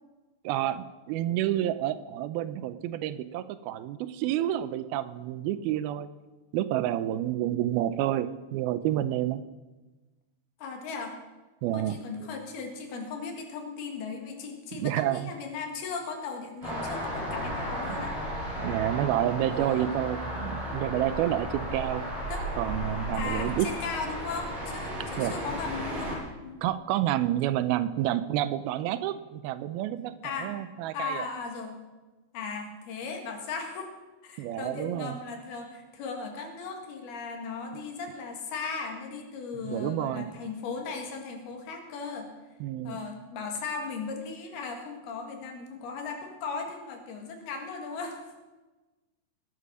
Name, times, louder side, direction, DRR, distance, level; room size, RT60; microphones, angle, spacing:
voice 1, 0.4-6.1 6.5-9.4 11.6-12.0 14.8-15.3 17.9-18.0 18.6-22.0 22.6-23.7 25.2-25.3 26.6-30.1 30.4-31.3 34.4-35.2 39.6-40.3 42.6-43.0, right 13 dB, 85° right, 13 dB, 2.5 m, -29 dB
voice 2, 10.6-11.2 11.7-18.2 19.5-19.9 22.3-22.5 23.1-26.1 26.4-26.6 30.2-30.5 30.9-31.8 32.3-33.9 34.2-42.3 42.8-48.3, left 4 dB, 85° left, 4 dB, 3.8 m, -37 dB
sound 1, 16.6-26.2, equal, 30° right, 6.5 m, -34 dB
19.5 x 8.4 x 6.2 m, 1.2 s
omnidirectional pair, 4.4 m